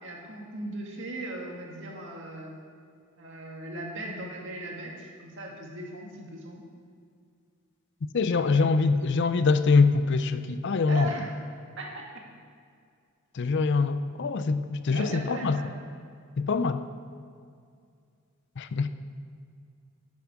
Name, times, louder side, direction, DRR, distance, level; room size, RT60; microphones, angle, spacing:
voice 1, 0.0-2.6 3.2-6.6 8.3-8.9 10.9-11.3 11.8-12.0 14.9-15.7, right 1 dB, 60° right, -1 dB, 1.9 m, -38 dB
voice 2, 8.1-11.1 13.3-15.6 16.4-16.8 18.6-18.9, left 4 dB, 55° left, 11 dB, 0.5 m, -24 dB
11.0 x 7.5 x 5.9 m, 2.3 s
head